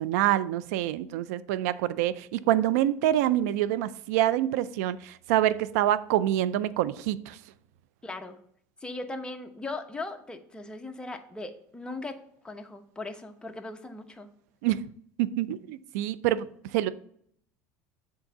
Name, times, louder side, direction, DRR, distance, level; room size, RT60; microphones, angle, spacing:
voice 1, 0.0-7.4 14.6-14.9 15.2-16.5 16.7-16.9, right 13 dB, 80° right, 0.4 m, -26 dB
voice 2, 8.0-8.4 8.8-12.2 12.4-14.3, left 2 dB, 10° left, 0.9 m, -38 dB
7.3 x 3.7 x 5.6 m
supercardioid pair, 100°, 8 cm